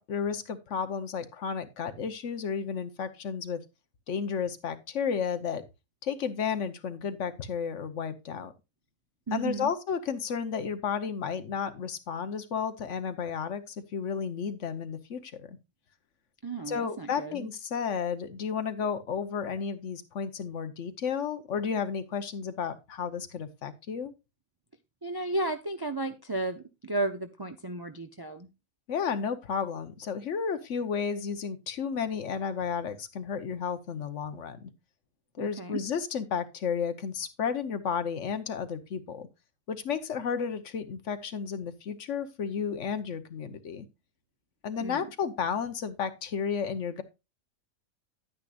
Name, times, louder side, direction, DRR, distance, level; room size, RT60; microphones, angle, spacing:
voice 1, 0.0-3.6 4.1-5.6 6.0-8.5 9.3-15.6 16.7-24.1 28.9-34.7 35.4-39.3 39.7-43.9 44.6-47.0, left 6 dB, 65° left, 10 dB, 1.2 m, -32 dB
voice 2, 9.3-9.7 16.4-17.5 25.0-28.5 35.4-35.8 44.8-45.1, right 2 dB, 35° right, 7 dB, 0.4 m, -33 dB
10.0 x 9.5 x 2.4 m, 0.25 s
omnidirectional pair, 1.4 m